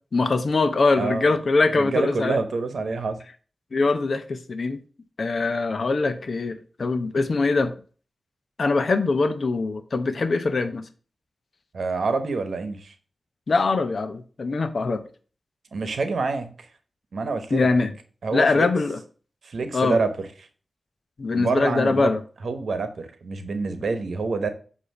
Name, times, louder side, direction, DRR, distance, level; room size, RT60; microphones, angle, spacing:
voice 1, 0.1-2.4 3.7-4.8 5.2-7.7 8.6-10.8 13.5-15.0 17.5-17.9 18.3-19.0 19.7-20.0 21.2-22.2, left 3 dB, 65° left, 0.8 m, -22 dB
voice 2, 1.0-1.3 1.7-3.2 11.7-12.9 15.7-16.5 17.1-17.7 18.2-18.7 19.4-20.1 21.3-22.1 22.4-24.5, right 4 dB, 80° right, 1.0 m, -27 dB
8.2 x 2.8 x 5.9 m
cardioid pair, 55°, 0 cm